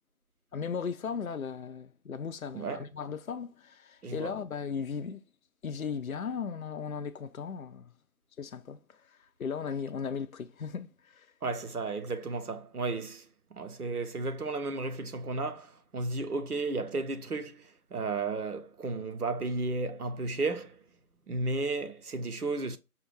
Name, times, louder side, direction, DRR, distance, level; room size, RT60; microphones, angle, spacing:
voice 1, 0.5-5.2 5.6-7.9 8.4-8.8 9.4-10.9 11.1-11.3, left 6 dB, 70° left, 0.5 m, -36 dB
voice 2, 2.5-2.9 4.0-4.4 11.4-13.2 13.5-20.8 21.3-22.8, right 3 dB, 80° right, 0.8 m, -33 dB
5.4 x 2.3 x 3.3 m
figure-of-eight pair, 170°, 44 cm